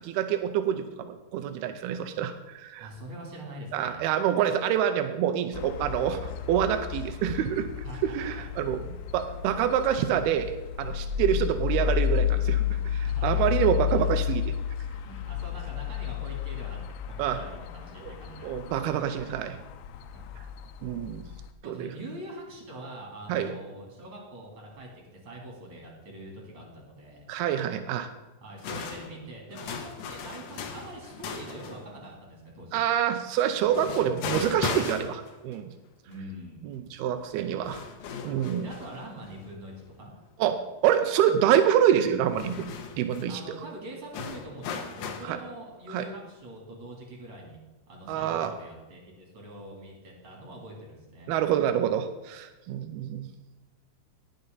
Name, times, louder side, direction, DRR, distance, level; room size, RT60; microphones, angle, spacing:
voice 1, 0.0-2.9 3.7-7.7 8.0-14.5 17.2-17.4 18.0-18.1 18.4-19.6 20.8-21.2 21.7-21.9 23.3-23.5 27.3-28.1 32.7-35.7 36.6-37.8 38.2-38.7 40.4-43.4 45.2-45.4 45.9-46.1 48.1-48.5 51.3-53.3, right 10 dB, 85° right, 7 dB, 2.6 m, -27 dB
voice 2, 2.8-4.1 7.8-8.4 13.0-14.2 15.0-19.0 20.0-20.4 21.6-24.9 25.2-27.2 28.4-32.8 36.0-36.8 38.6-40.1 43.0-47.6 47.9-51.3, right 1 dB, 35° right, -1 dB, 3.7 m, -44 dB
sound 1, 5.5-21.5, left 10 dB, 90° left, 2.7 m, -32 dB
sound 2, 28.6-31.9 33.4-35.6 36.1-36.2 37.3-37.4 37.6-39.9 40.3-40.4 42.2-43.3 44.1-45.3, left 6 dB, 65° left, 2.1 m, -37 dB
18.5 x 6.6 x 4.0 m, 1.1 s
omnidirectional pair, 4.5 m